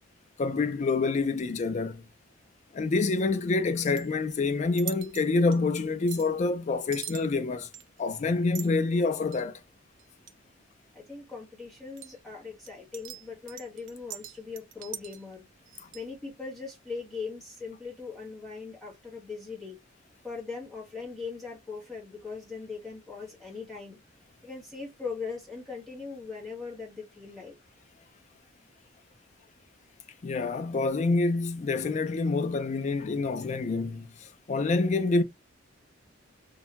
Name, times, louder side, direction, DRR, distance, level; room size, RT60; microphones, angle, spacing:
voice 1, 0.4-2.0 2.7-7.7 8.0-9.6 30.2-35.2, left 3 dB, 35° left, 0.3 m, -27 dB
sound 1, 3.8-4.4 4.8-5.3 5.5-5.6 6.1-6.3 6.9-7.3 7.7-8.0 8.5-8.7 9.3-9.5 10.0-10.3 12.0-12.2 12.7-15.3 15.6-16.0, right 11 dB, 70° right, 0.4 m, -42 dB
voice 2, 10.9-15.4 15.9-19.8 20.2-24.0 24.4-27.6, left 4 dB, ahead, 1.1 m, -40 dB
2.6 x 2.2 x 2.8 m
head